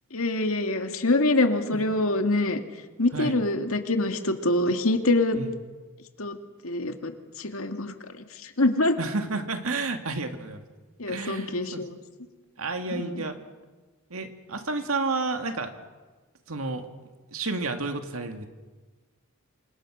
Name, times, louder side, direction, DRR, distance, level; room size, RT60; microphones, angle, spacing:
voice 1, 0.1-2.6 3.0-5.4 6.2-6.4 6.6-7.9 8.4-9.0 11.0-12.0 12.9-13.2, left 2 dB, 70° left, 6 dB, 2.2 m, -25 dB
voice 2, 9.0-10.6 11.1-11.8 12.6-13.4 14.1-15.7 16.5-16.9 17.3-18.5, right 3 dB, 70° right, 6 dB, 2.2 m, -31 dB
28.0 x 26.0 x 6.3 m, 1.3 s
head